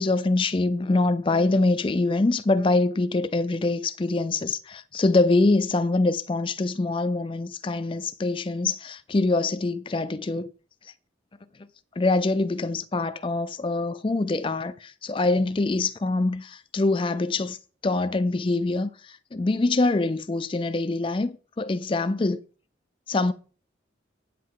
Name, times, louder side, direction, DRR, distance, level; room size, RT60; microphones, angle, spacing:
voice 1, 0.0-10.5 12.0-17.6 17.8-22.4 23.1-23.3, left 2 dB, 25° left, 0.4 m, -24 dB
9.1 x 7.7 x 4.7 m
head